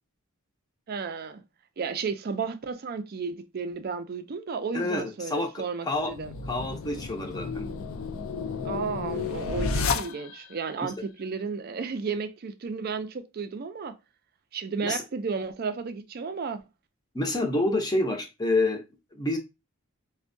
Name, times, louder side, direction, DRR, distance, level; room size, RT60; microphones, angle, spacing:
voice 1, 0.9-1.4 1.8-6.3 8.6-13.9 14.5-16.6, right 5 dB, 45° right, 0.4 m, -33 dB
voice 2, 4.7-6.1 6.5-7.6 14.8-15.0 17.1-18.8 19.1-19.4, left 2 dB, 20° left, 0.6 m, -28 dB
sound 1, 6.0-10.6, left 4 dB, 65° left, 0.4 m, -32 dB
4.4 x 2.1 x 2.5 m
head